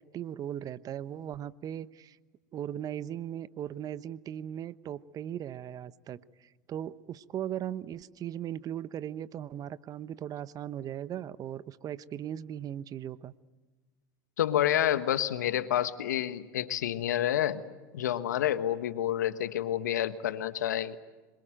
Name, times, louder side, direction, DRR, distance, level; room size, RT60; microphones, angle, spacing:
voice 1, 0.0-2.2 2.5-13.3, right 10 dB, 40° right, 1.0 m, -38 dB
voice 2, 14.4-17.6 17.9-21.0, left 11 dB, 80° left, 1.3 m, -29 dB
26.0 x 22.5 x 9.1 m
hypercardioid pair, 85°, 9 cm